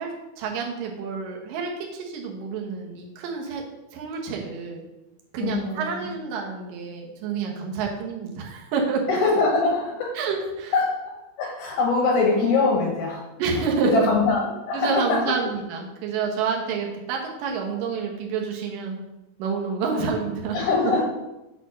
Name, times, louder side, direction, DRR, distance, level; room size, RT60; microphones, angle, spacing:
voice 1, 0.0-3.6 3.9-4.9 5.3-9.0 10.2-10.7 13.4-14.1 14.7-19.0 19.4-20.6, right 5 dB, 70° right, 0 dB, 2.2 m, -28 dB
voice 2, 5.4-6.1 9.1-10.2 10.7-13.2 13.6-13.7 13.9-15.3 19.9-20.1 20.5-21.0, left 3 dB, 75° left, -2 dB, 2.9 m, -23 dB
6.8 x 4.2 x 6.3 m, 0.97 s
omnidirectional pair, 5.4 m